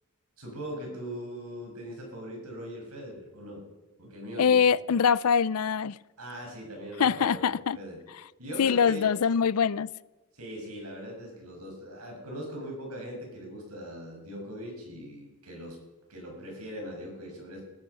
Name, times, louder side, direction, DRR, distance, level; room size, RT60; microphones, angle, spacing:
voice 1, 0.4-3.6 4.0-4.6 6.2-8.0 8.4-9.2 10.3-15.8 16.1-17.6, equal, 90° right, 6.4 m, -40 dB
voice 2, 4.4-6.0 7.0-7.8 8.6-9.9, left 7 dB, 80° left, 0.5 m, -23 dB
20.0 x 12.5 x 5.6 m
head